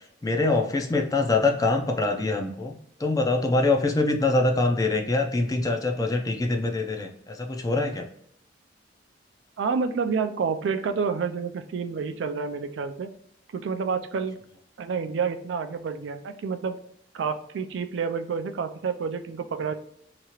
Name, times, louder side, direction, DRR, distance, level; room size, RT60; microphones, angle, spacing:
voice 1, 0.2-8.0, left 2 dB, 20° left, 3 dB, 0.4 m, -24 dB
voice 2, 9.6-13.1 13.5-14.4 14.8-16.7 17.1-19.7, right 5 dB, 75° right, 9 dB, 0.3 m, -29 dB
2.9 x 2.4 x 2.9 m, 0.70 s
head